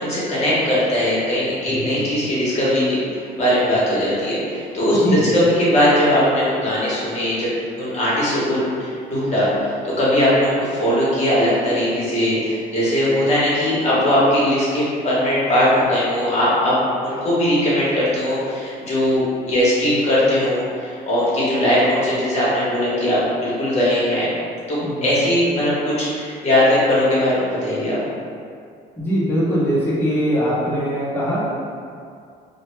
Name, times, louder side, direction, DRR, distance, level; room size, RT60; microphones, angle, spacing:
voice 1, 0.0-7.5 7.8-16.8 17.0-24.3 24.7-28.0, left 1 dB, 40° left, -8 dB, 0.9 m, -19 dB
voice 2, 1.7-2.0 4.9-5.2 24.8-25.1 29.0-31.5, equal, 10° left, -11 dB, 0.7 m, -22 dB
2.1 x 2.1 x 3.1 m, 2.3 s
cardioid pair, 110°, 17 cm